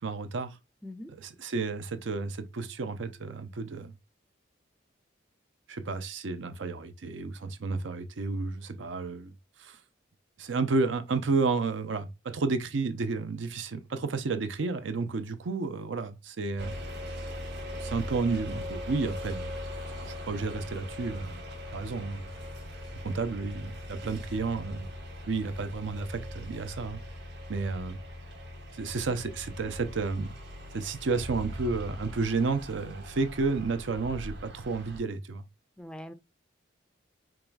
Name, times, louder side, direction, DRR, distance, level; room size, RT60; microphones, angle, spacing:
voice 1, 0.0-0.6 1.1-3.9 5.7-9.3 9.6-9.8 10.4-16.7 17.8-19.5 20.0-21.4 21.7-22.3 23.0-24.9 25.2-27.0 27.5-28.0 28.7-30.3 30.7-35.4, right 4 dB, 75° right, 0.6 m, -31 dB
sound 1, 16.6-35.0, left 1 dB, 55° right, 1.0 m, -40 dB
voice 2, 35.8-36.1, left 1 dB, 5° left, 0.4 m, -42 dB
4.8 x 3.0 x 2.3 m
head